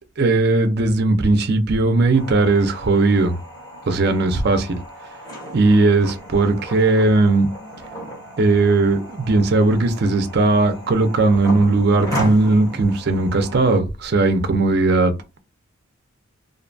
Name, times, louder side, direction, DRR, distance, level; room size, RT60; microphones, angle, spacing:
voice 1, 0.2-3.4 3.9-4.8 5.5-7.5 8.4-15.1, right 3 dB, 50° right, 0.5 m, -17 dB
sound 1, 2.1-13.8, equal, 20° left, 1.2 m, -35 dB
2.6 x 2.2 x 2.5 m
head